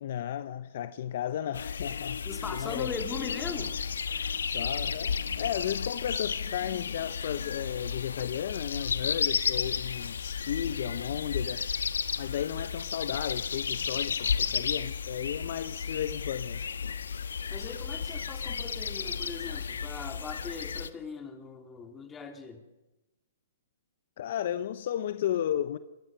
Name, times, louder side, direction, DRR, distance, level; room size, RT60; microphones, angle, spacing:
voice 1, 0.0-2.2 2.5-2.9 4.5-11.7 12.2-16.7 24.2-25.8, left 10 dB, 55° left, 0.9 m, -34 dB
sound 1, 1.5-20.9, left 6 dB, 85° left, 1.2 m, -33 dB
voice 2, 2.2-3.7 17.5-22.6, left 5 dB, 15° left, 3.3 m, -40 dB
22.5 x 19.5 x 6.7 m
hypercardioid pair, 135°, 0 cm